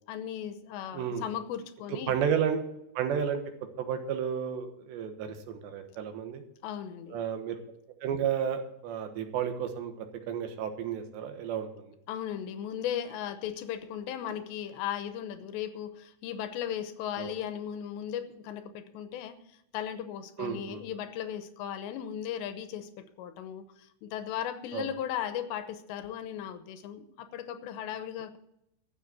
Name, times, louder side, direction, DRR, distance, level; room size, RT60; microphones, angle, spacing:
voice 1, 0.1-2.1 6.6-7.2 12.1-19.4 19.7-28.4, left 10 dB, 90° left, 10 dB, 3.1 m, -37 dB
voice 2, 0.9-1.3 2.1-2.6 3.0-3.4 3.8-6.4 7.1-7.6 8.0-11.9 17.2-17.3 20.4-20.8 24.7-24.9, right 8 dB, 80° right, 6 dB, 3.5 m, -32 dB
14.0 x 6.9 x 8.1 m, 0.80 s
omnidirectional pair, 5.0 m